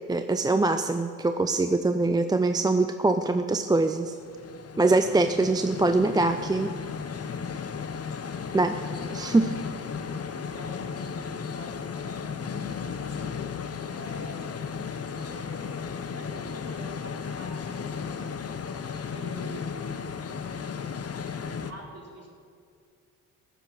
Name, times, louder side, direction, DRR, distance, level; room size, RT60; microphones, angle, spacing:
voice 1, 0.1-4.1 4.8-6.7 8.5-8.7 9.1-9.5, right 2 dB, 10° right, 8 dB, 0.5 m, -23 dB
sound 1, 3.9-21.7, left 6 dB, 30° left, 0.9 m, -35 dB
voice 2, 8.7-9.1 9.7-13.4 13.9-14.8 15.0-18.3 19.0-20.2 21.4-22.3, right 1 dB, 30° right, -2 dB, 4.1 m, -47 dB
15.5 x 7.1 x 7.0 m, 2.2 s
hypercardioid pair, 45°, 45 cm